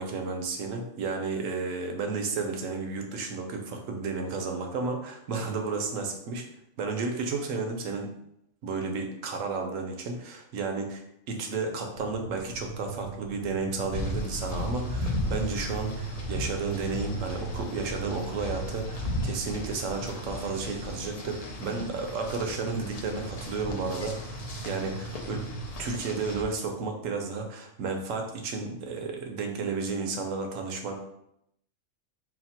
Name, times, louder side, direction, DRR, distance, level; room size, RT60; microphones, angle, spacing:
voice 1, 0.0-6.4 6.8-8.1 8.6-25.4 25.8-31.0, right 4 dB, 70° right, 3 dB, 1.0 m, -32 dB
sound 1, 11.9-25.7, right 3 dB, 20° right, 0.5 m, -40 dB
sound 2, 13.9-26.4, left 2 dB, 65° left, 0.3 m, -36 dB
4.2 x 2.1 x 4.2 m, 0.77 s
omnidirectional pair, 1.4 m